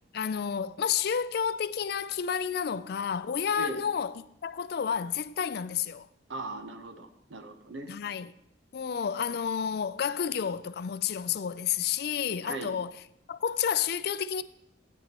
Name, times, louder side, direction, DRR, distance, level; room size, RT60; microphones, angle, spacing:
voice 1, 0.1-6.1 7.9-8.3 8.7-12.9 13.3-14.4, left 7 dB, 55° left, 0.4 m, -30 dB
voice 2, 6.3-7.9 12.4-12.7, right 2 dB, 80° right, 0.9 m, -38 dB
13.5 x 9.2 x 3.0 m
head